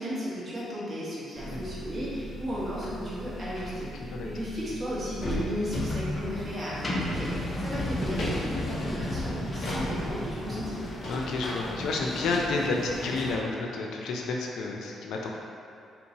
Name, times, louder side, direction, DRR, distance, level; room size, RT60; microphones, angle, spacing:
voice 1, 0.0-10.8, equal, 30° right, -8 dB, 1.4 m, -35 dB
sound 1, 1.4-13.4, left 1 dB, 30° left, 0.6 m, -34 dB
sound 2, 5.7-5.9 6.3-6.5 6.9-7.5 8.2-8.3 9.6-9.8 10.4-10.5 11.0-11.2 11.5-11.6 11.7-11.9 12.1-12.3, left 1 dB, 50° left, 1.3 m, -38 dB
voice 2, 11.1-15.3, left 3 dB, 80° left, 0 dB, 0.5 m, -30 dB
4.3 x 3.6 x 2.8 m, 2.5 s
cardioid pair, 90°, 0 cm